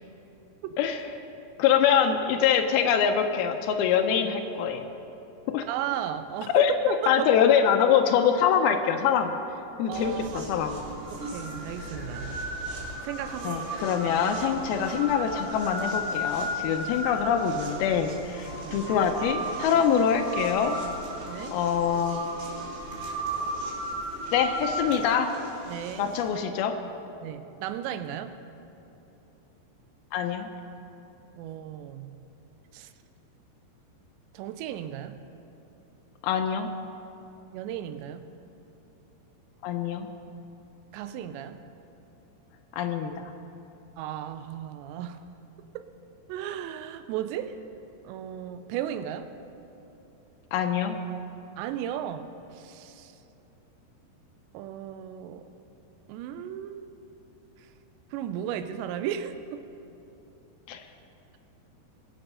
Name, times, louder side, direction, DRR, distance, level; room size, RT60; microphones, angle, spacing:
voice 1, 1.6-4.9 5.5-5.6 6.5-9.4 9.8-10.8 13.4-20.8 21.5-22.2 24.3-25.3 26.0-26.8 30.1-30.5 36.2-36.7 39.6-40.1 42.7-43.2 50.5-51.0 60.7-60.8, left 8 dB, 85° left, 6 dB, 2.2 m, -24 dB
voice 2, 5.7-7.3 9.9-10.5 11.1-12.4 13.0-13.8 18.6-18.8 21.2-21.6 25.7-26.1 27.2-28.4 31.3-32.1 32.7-32.9 34.3-35.1 37.5-38.3 40.9-41.6 44.0-45.2 45.8-45.9 46.3-47.6 48.0-49.3 51.6-52.3 52.5-53.1 54.5-55.5 56.1-56.9 58.1-59.7, right 10 dB, 85° right, 10 dB, 2.8 m, -35 dB
sound 1, 9.9-26.3, equal, 65° right, 4.3 m, -35 dB
20.5 x 7.0 x 5.5 m, 2.9 s
omnidirectional pair, 5.0 m